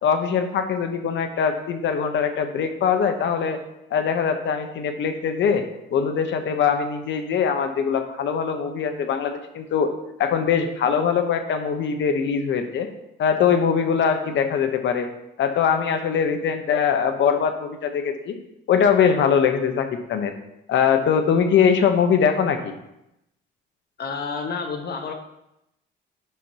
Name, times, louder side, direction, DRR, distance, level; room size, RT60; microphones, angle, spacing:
voice 1, 0.0-3.6 3.9-5.6 5.9-9.9 10.2-12.9 13.2-15.1 15.4-18.4 18.7-20.3 20.7-22.7, left 7 dB, 70° left, 7 dB, 0.9 m, -22 dB
voice 2, 24.0-25.1, left 5 dB, 55° left, 4 dB, 1.4 m, -29 dB
10.5 x 6.0 x 2.8 m, 0.85 s
cardioid pair, 90°, 20 cm